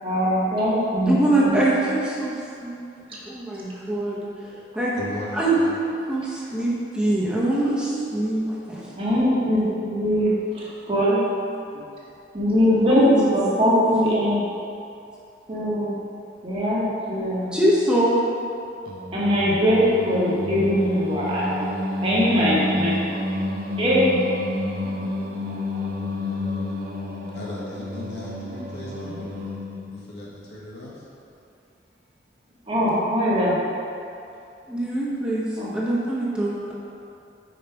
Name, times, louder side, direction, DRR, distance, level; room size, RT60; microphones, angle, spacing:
voice 1, 0.0-1.7 9.0-11.2 12.3-14.4 15.5-15.9 16.4-17.6 19.1-21.7 22.0-23.1 23.8-24.2 32.7-33.6 35.6-35.7, equal, 30° right, -6 dB, 1.2 m, -21 dB
voice 2, 1.1-2.4 2.6-2.8 3.3-4.2 4.7-4.9 5.3-8.8 12.9-13.1 13.6-14.0 17.5-18.2 24.8-25.1 34.7-35.5 35.7-36.7, right 1 dB, 5° right, -7 dB, 0.8 m, -23 dB
voice 3, 5.0-5.7 27.3-29.5 29.9-31.0, left 1 dB, 65° left, -6 dB, 1.4 m, -37 dB
Singing, 18.9-30.0, left 1 dB, 55° right, 0.6 m, -30 dB
5.2 x 4.6 x 4.6 m, 2.6 s
head